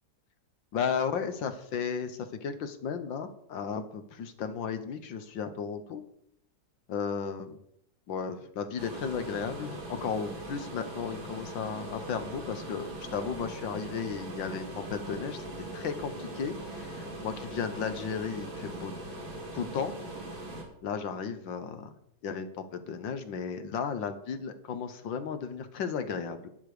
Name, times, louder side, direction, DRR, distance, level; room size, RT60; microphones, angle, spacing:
voice 1, 0.7-6.0 6.9-7.6 8.1-15.4 15.7-18.9 19.5-19.9 20.8-21.9 22.2-26.5, left 6 dB, 70° left, 9 dB, 1.7 m, -34 dB
sound 1, 8.8-20.6, right 1 dB, 75° right, 3.7 m, -41 dB
12.0 x 9.7 x 5.0 m, 0.70 s
omnidirectional pair, 2.2 m